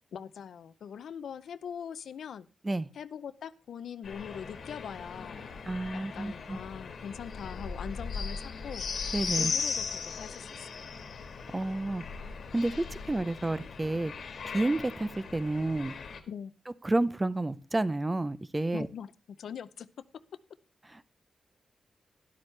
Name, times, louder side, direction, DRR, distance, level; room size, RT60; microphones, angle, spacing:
voice 1, 0.1-2.5 2.9-5.4 5.9-8.9 9.4-11.1 16.3-16.5 18.7-20.1, left 7 dB, 85° left, 0.6 m, -42 dB
sound 1, 4.0-16.2, left 5 dB, 65° left, 1.5 m, -38 dB
voice 2, 5.7-6.6 9.1-9.5 11.5-12.0 12.5-14.1 14.5-15.9 16.8-18.9, right 2 dB, 15° right, 0.5 m, -30 dB
12.5 x 11.5 x 3.2 m
wide cardioid pair, 145°, 0 cm